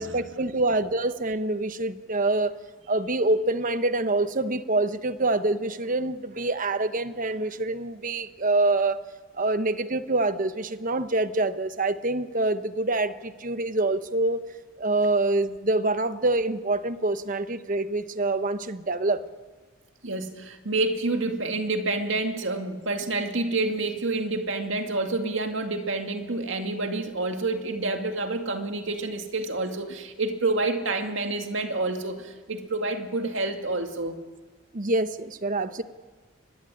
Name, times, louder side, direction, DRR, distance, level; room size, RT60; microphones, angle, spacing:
voice 1, 0.0-2.6 2.9-9.0 9.4-14.4 14.8-19.2 34.7-35.8, right 2 dB, 40° right, 11 dB, 1.1 m, -26 dB
voice 2, 20.0-34.2, right 2 dB, 70° right, 5 dB, 2.4 m, -28 dB
24.5 x 19.0 x 10.0 m, 1.4 s
head